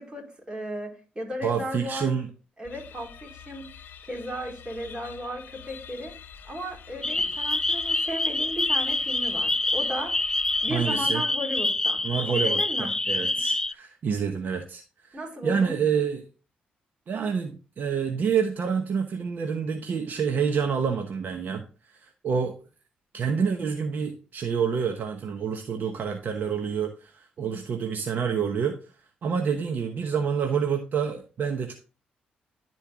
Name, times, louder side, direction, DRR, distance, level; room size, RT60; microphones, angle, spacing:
voice 1, 0.0-2.1 2.6-3.6 4.1-6.1 6.4-10.1 10.6-12.0 12.3-12.9 15.1-15.8, equal, 25° right, 0 dB, 4.0 m, -35 dB
voice 2, 1.4-2.3 10.7-11.2 12.0-16.2 17.1-21.7 22.0-22.5 23.1-28.8 29.2-31.7, right 6 dB, 60° right, 5 dB, 1.0 m, -28 dB
sound 1, 2.6-11.3, left 8 dB, 70° left, 0.8 m, -46 dB
sound 2, 7.0-13.7, left 2 dB, 15° left, 0.3 m, -26 dB
11.5 x 4.5 x 3.6 m, 0.35 s
supercardioid pair, 65°, 4 cm